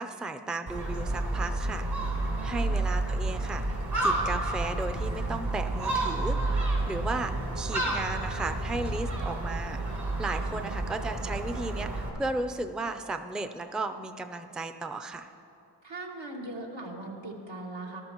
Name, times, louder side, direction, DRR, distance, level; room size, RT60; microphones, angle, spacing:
voice 1, 0.0-1.9 2.4-9.8 10.2-15.3, right 2 dB, ahead, 8 dB, 0.4 m, -35 dB
Gull seagull, 0.7-12.1, right 2 dB, 60° right, 2.7 m, -30 dB
voice 2, 2.4-2.7 10.4-10.6 15.8-18.0, right 2 dB, 80° right, -2 dB, 1.9 m, -40 dB
19.0 x 12.5 x 3.0 m, 2.8 s
wide cardioid pair, 65°, 44 cm